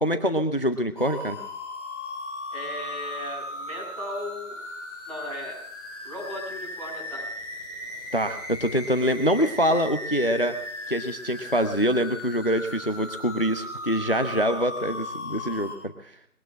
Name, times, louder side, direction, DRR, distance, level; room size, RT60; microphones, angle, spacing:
voice 1, 0.0-1.4 8.1-10.5 10.9-16.2, equal, 40° left, 9 dB, 0.8 m, -25 dB
sound 1, 1.0-15.8, left 2 dB, 20° left, 6.6 m, -37 dB
voice 2, 2.5-4.6 5.1-5.6 6.0-7.3, left 1 dB, 25° right, -7 dB, 7.7 m, -36 dB
21.0 x 9.0 x 7.5 m, 0.65 s
figure-of-eight pair, 170°, 44 cm